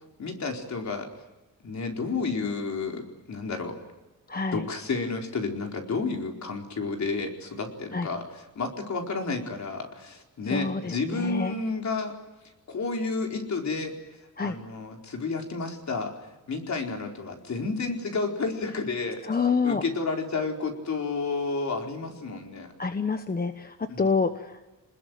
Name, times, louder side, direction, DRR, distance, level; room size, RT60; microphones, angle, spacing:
voice 1, 0.2-1.1 1.6-3.8 4.5-12.1 12.7-13.9 14.4-19.4 19.6-22.7 23.9-24.2, left 4 dB, 55° left, 2 dB, 4.5 m, -31 dB
voice 2, 4.3-4.6 7.9-8.1 10.5-11.5 14.4-14.5 19.3-19.8 22.8-24.5, left 5 dB, 25° left, 8 dB, 1.1 m, -27 dB
27.0 x 20.5 x 9.3 m, 1.0 s
wide cardioid pair, 145°, 33 cm